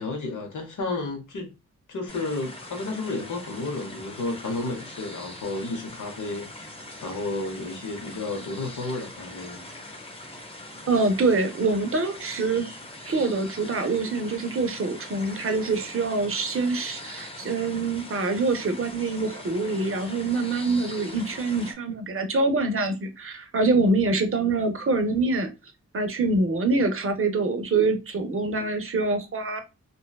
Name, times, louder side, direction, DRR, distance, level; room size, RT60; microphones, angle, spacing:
voice 1, 0.0-1.5 1.9-6.7 7.0-9.6, left 3 dB, 85° left, 0.8 m, -32 dB
sound 1, 2.1-21.7, left 1 dB, 20° left, 0.5 m, -42 dB
voice 2, 10.9-12.7 13.0-25.5 25.9-29.6, right 3 dB, 45° right, 0.5 m, -25 dB
2.6 x 2.2 x 2.2 m
wide cardioid pair, 130°, 30 cm